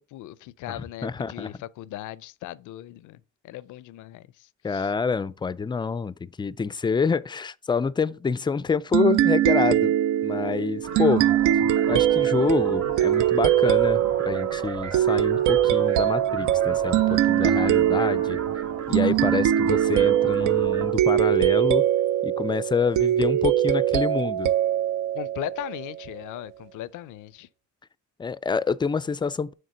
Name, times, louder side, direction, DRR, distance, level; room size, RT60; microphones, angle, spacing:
voice 1, 0.0-4.9 25.1-27.5, left 14 dB, 85° left, 0.5 m, -38 dB
voice 2, 0.7-1.5 4.6-9.9 10.2-11.3 11.9-18.4 18.9-21.8 22.2-24.5 28.2-29.5, left 5 dB, 15° left, 0.3 m, -27 dB
sound 1, 8.9-26.1, right 12 dB, 80° right, 0.5 m, -22 dB
sound 2, 10.8-20.9, right 5 dB, 60° right, 1.2 m, -37 dB
6.6 x 3.6 x 5.6 m
cardioid pair, 90°, 30 cm